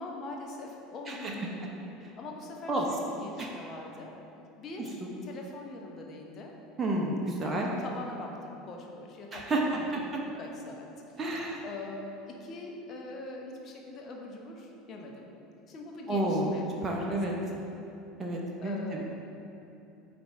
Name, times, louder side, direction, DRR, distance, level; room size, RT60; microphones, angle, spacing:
voice 1, 0.0-1.8 2.1-4.1 4.6-6.5 7.4-10.9 11.3-11.4 11.6-15.3 15.7-16.7 17.0-17.6 18.6-19.0, left 2 dB, 40° left, 0 dB, 0.9 m, -43 dB
voice 2, 6.8-7.7 9.3-9.6 9.9-10.0 11.2-11.6 16.1-16.6 16.8-17.3 18.2-19.0, right 1 dB, 25° right, -1 dB, 0.8 m, -30 dB
8.0 x 3.4 x 4.6 m, 2.8 s
figure-of-eight pair, 70°, 0 cm